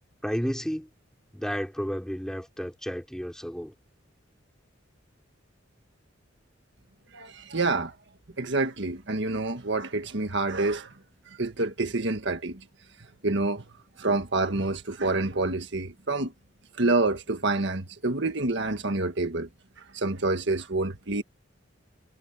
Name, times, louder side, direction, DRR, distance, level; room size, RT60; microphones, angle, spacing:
voice 1, 0.2-0.9 1.3-3.7, equal, 5° left, 5.4 m, -32 dB
voice 2, 7.1-7.9 8.4-10.9 11.4-12.6 13.2-13.6 14.0-16.3 16.8-19.5 19.9-21.2, right 2 dB, 65° right, 1.7 m, -27 dB
head